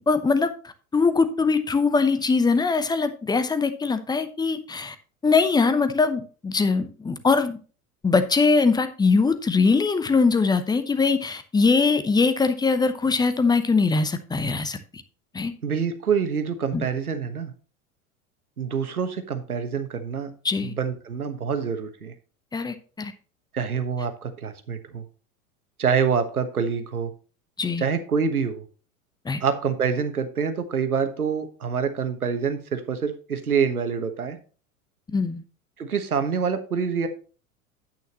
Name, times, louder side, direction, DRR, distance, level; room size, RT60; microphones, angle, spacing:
voice 1, 0.1-0.5 0.9-5.0 5.2-7.6 8.0-15.0 15.3-15.5 16.7-16.9 20.4-20.7 22.5-23.1 27.6-27.8 29.2-29.4 35.1-35.4, left 4 dB, 10° left, 11 dB, 0.8 m, -22 dB
voice 2, 15.6-17.5 18.6-20.3 20.6-22.1 23.5-25.0 25.8-27.1 27.8-28.6 29.4-34.4 35.8-37.1, right 6 dB, 80° right, 8 dB, 1.3 m, -26 dB
9.2 x 8.8 x 2.9 m, 0.37 s
figure-of-eight pair, 85°, 43 cm